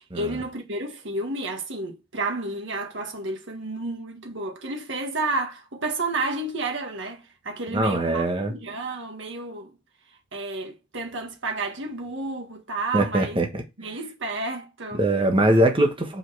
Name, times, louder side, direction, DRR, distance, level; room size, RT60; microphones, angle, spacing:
voice 1, 0.0-8.2 8.5-9.7 10.3-13.4 13.8-15.0, right 2 dB, 70° right, 1.6 m, -31 dB
voice 2, 7.7-8.5 12.9-13.6 14.9-16.2, right 1 dB, 25° right, 1.4 m, -22 dB
5.6 x 5.2 x 4.8 m
head